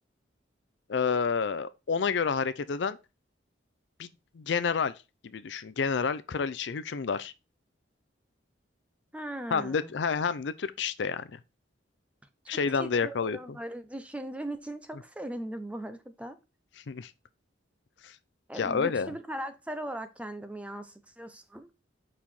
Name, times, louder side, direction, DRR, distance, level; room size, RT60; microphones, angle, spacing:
voice 1, 0.9-3.0 4.0-4.1 4.3-4.9 5.2-7.3 9.5-11.4 12.5-13.4 16.9-17.1 18.0-18.2 18.5-19.1, left 5 dB, 65° left, 0.5 m, -29 dB
voice 2, 9.1-9.9 12.4-16.4 18.5-21.7, right 1 dB, 5° right, 0.6 m, -39 dB
5.4 x 4.8 x 4.3 m
head